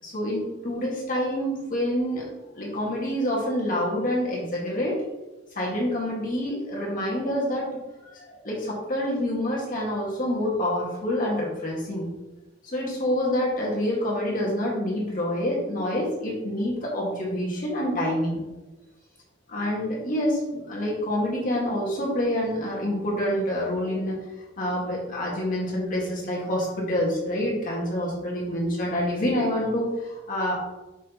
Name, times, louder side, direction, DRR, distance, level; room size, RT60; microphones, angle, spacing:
voice 1, 0.0-2.2 2.6-5.0 5.6-12.1 12.6-18.4 19.5-24.2 24.6-30.6, left 1 dB, 45° left, -4 dB, 1.9 m, -27 dB
6.3 x 6.2 x 3.0 m, 1.1 s
head